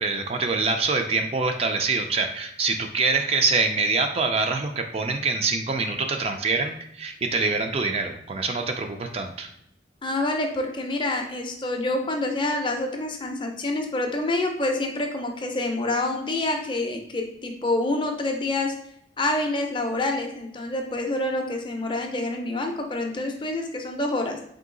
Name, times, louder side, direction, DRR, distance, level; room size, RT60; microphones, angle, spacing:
voice 1, 0.0-9.5, right 4 dB, 35° right, 5 dB, 0.3 m, -25 dB
voice 2, 10.0-18.8 19.2-24.4, left 2 dB, 25° left, 3 dB, 0.5 m, -27 dB
3.8 x 2.7 x 3.7 m, 0.72 s
head